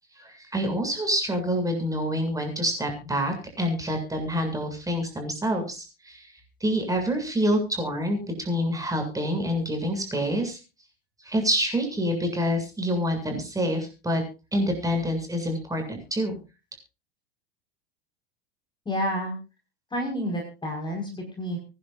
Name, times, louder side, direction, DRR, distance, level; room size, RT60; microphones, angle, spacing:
voice 1, 0.2-6.3 6.6-10.6 11.2-14.2 14.5-16.4, equal, 10° right, 4 dB, 7.4 m, -27 dB
voice 2, 18.9-19.4 19.9-21.6, equal, 15° left, 2 dB, 5.4 m, -29 dB
25.0 x 11.0 x 2.6 m, 0.31 s
hypercardioid pair, 85°, 31 cm